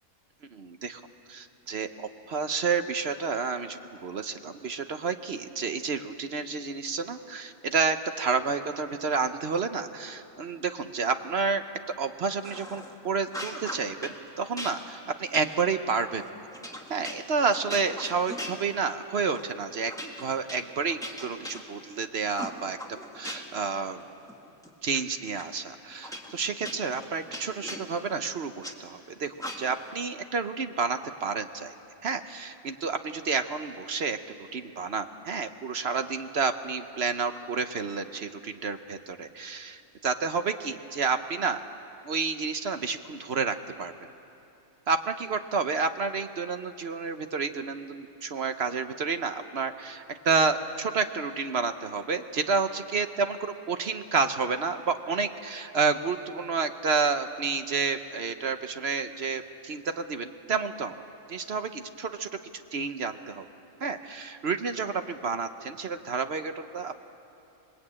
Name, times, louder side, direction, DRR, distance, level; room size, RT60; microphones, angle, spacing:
voice 1, 0.5-1.0 1.3-11.6 12.0-16.2 16.9-19.9 20.2-22.8 23.1-24.0 24.8-31.7 32.0-34.2 34.5-41.6 42.0-43.9 44.9-60.9 61.3-62.3 62.7-63.5 63.8-67.0, right 5 dB, 55° right, 9 dB, 1.0 m, -30 dB
sound 1, 12.4-12.9 13.3-14.2 14.6-19.0 19.3-19.5 19.9-22.0 22.4-23.7 24.0-25.0 25.4-25.5 26.0-28.8 29.4-29.9, equal, ahead, 1.9 m, -40 dB
26.0 x 20.5 x 8.7 m, 2.8 s
omnidirectional pair, 1.5 m